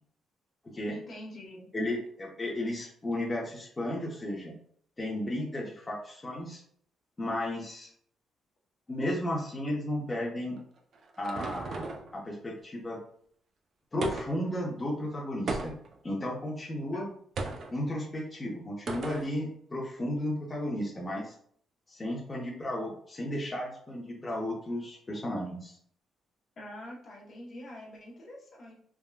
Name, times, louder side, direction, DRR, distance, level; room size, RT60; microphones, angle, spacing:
voice 1, 0.9-1.7 16.9-17.0 26.6-28.7, left 1 dB, 50° left, -2 dB, 0.8 m, -45 dB
voice 2, 1.7-4.5 5.0-6.6 7.2-7.9 8.9-10.6 11.2-13.0 13.9-15.8 16.0-17.1 17.7-21.3 21.9-25.8, left 1 dB, 25° left, -2 dB, 0.7 m, -34 dB
sound 1, 10.6-12.1 14.0-14.5 15.5-16.0 17.4-17.7 18.9-19.3, right 3 dB, 55° right, 0.5 m, -36 dB
3.5 x 2.2 x 2.2 m, 0.62 s
cardioid pair, 90°, 0 cm